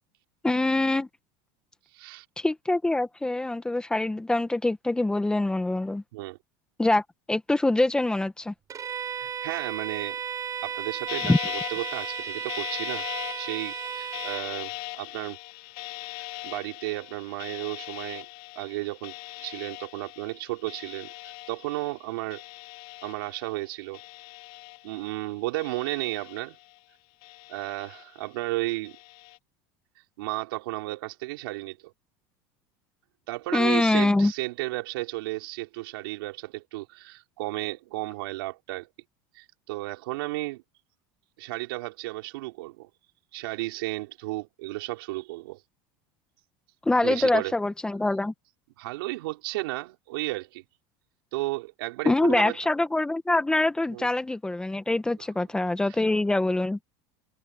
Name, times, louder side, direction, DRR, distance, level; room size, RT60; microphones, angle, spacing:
voice 1, 0.4-1.1 2.4-6.0 6.8-8.5 11.3-11.4 33.5-34.3 46.8-48.3 52.0-56.8, left 2 dB, 5° left, 1.6 m, -24 dB
voice 2, 1.9-2.2 6.1-6.4 9.0-10.2 10.6-11.4 11.7-13.0 13.4-15.4 16.2-18.3 18.5-19.1 19.4-22.4 23.0-24.0 24.8-26.6 27.5-29.0 30.2-31.9 33.3-38.9 39.3-40.6 41.4-42.9 43.3-45.6 47.0-47.5 48.8-50.6 51.3-52.6 53.9-54.1, right 20 dB, 80° right, 5.0 m, -33 dB
Bowed string instrument, 8.7-14.5, right 7 dB, 30° right, 5.5 m, -34 dB
sound 1, 11.1-23.6 23.9-25.2 25.6-26.8 27.2-28.3 28.8-29.4, left 26 dB, 70° left, 4.3 m, -40 dB
supercardioid pair, 135°, 12 cm